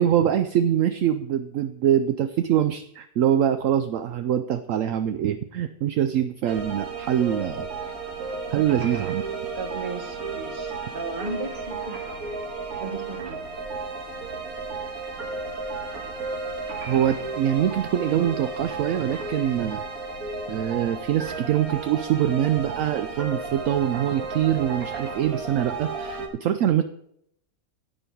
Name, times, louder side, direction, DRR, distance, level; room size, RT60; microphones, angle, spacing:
voice 1, 0.0-7.7 8.5-9.2 16.9-19.8 20.5-26.8, right 10 dB, 70° right, 10 dB, 0.9 m, -24 dB
sound 1, 6.5-26.3, right 4 dB, 90° right, 2.0 m, -33 dB
voice 2, 9.5-12.3 12.7-13.5, right 3 dB, 35° right, 5 dB, 1.3 m, -35 dB
16.5 x 5.6 x 4.5 m, 0.73 s
omnidirectional pair, 1.5 m